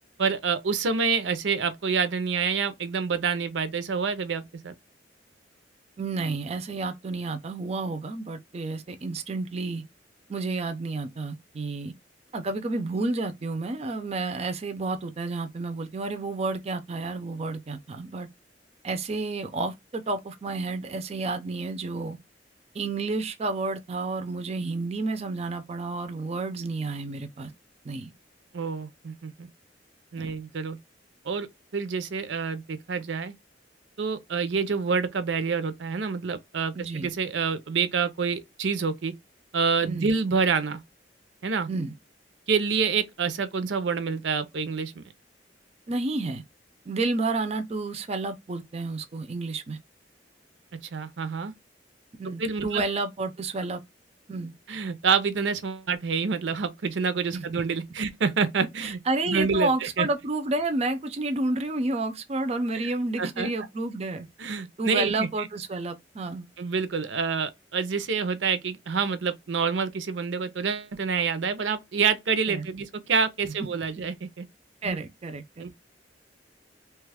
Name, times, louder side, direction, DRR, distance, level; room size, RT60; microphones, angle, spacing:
voice 1, 0.2-4.7 28.5-29.5 30.1-30.8 31.2-31.5 31.7-33.3 34.0-39.1 39.5-40.8 41.4-41.7 42.5-45.0 50.9-51.5 52.4-52.8 54.7-59.0 59.3-60.1 63.2-63.5 64.4-65.3 66.6-74.4 74.8-75.0 75.6-75.7, right 5 dB, 85° right, 0.5 m, -27 dB
voice 2, 6.0-9.8 10.3-11.9 12.3-18.3 18.8-22.2 22.7-27.5 27.8-28.1 30.2-30.3 36.7-37.1 39.8-40.1 41.7-41.9 45.9-46.4 46.9-49.8 52.2-53.8 54.3-54.5 57.3-57.5 58.8-64.3 64.8-66.5 72.5-72.8 74.8-75.6, right 3 dB, 35° right, 0.4 m, -30 dB
2.9 x 2.3 x 3.3 m
head